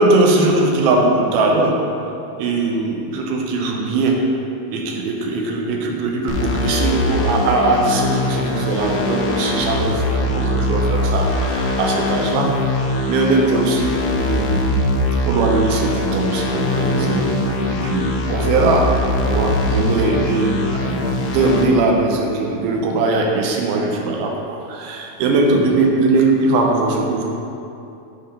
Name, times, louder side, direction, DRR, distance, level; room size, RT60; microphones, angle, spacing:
voice 1, 0.0-1.8 2.4-4.2 4.7-12.5 13.1-14.6 15.2-17.3 17.7-18.9 19.2-27.2, right 3 dB, 85° right, 0 dB, 2.5 m, -20 dB
sound 1, 6.3-21.6, left 1 dB, 80° left, 1.9 m, -21 dB
7.8 x 3.5 x 5.4 m, 2.7 s
omnidirectional pair, 4.4 m